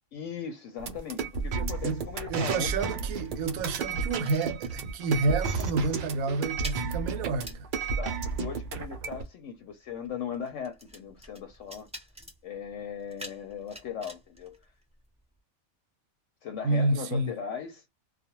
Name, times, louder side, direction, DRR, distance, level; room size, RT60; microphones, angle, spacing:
voice 1, 0.1-2.7 8.0-11.9 12.4-14.6 16.4-17.8, left 8 dB, 70° left, 0.9 m, -38 dB
sound 1, 0.8-9.2, right 5 dB, 70° right, 0.4 m, -32 dB
voice 2, 2.3-7.7 16.6-17.3, right 3 dB, 90° right, 1.0 m, -29 dB
sound 2, 2.7-5.2 5.4-5.7 6.0-15.4, equal, 5° right, 0.7 m, -49 dB
2.3 x 2.2 x 2.9 m
omnidirectional pair, 1.4 m